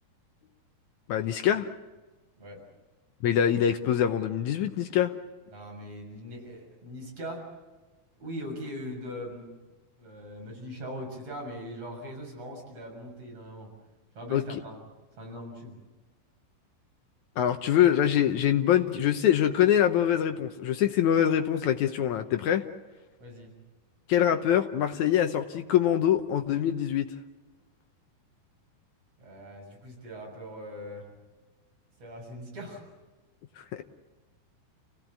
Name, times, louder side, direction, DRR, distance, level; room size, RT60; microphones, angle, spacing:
voice 1, 1.1-1.7 3.2-5.1 14.3-14.4 17.4-22.7 24.1-27.1 33.7-33.8, left 10 dB, 75° left, 7 dB, 1.8 m, -24 dB
voice 2, 5.5-7.4 8.2-9.5 10.0-13.7 14.2-14.8 15.2-15.8 23.2-23.5 29.2-31.0 32.0-32.8, equal, 40° right, 0 dB, 7.6 m, -40 dB
30.0 x 17.5 x 8.3 m, 1.2 s
omnidirectional pair, 4.5 m